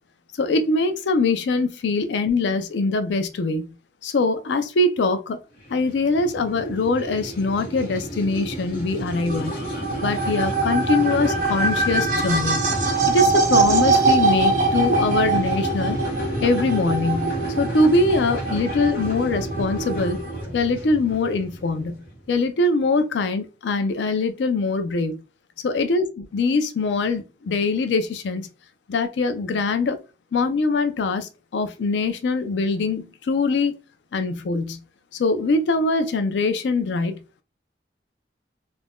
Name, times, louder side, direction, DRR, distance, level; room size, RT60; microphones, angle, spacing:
voice 1, 0.4-3.7 4.0-5.4 5.7-9.6 10.0-12.6 13.1-16.0 16.4-20.2 20.5-22.0 22.3-25.2 25.6-28.5 28.9-30.0 30.3-33.8 34.1-34.8 35.1-37.2, left 3 dB, 80° left, 0.4 m, -23 dB
sound 1, 5.6-22.2, right 1 dB, 50° left, 1.0 m, -30 dB
sound 2, 9.1-20.4, right 3 dB, 45° right, 0.5 m, -23 dB
2.5 x 2.2 x 3.4 m
head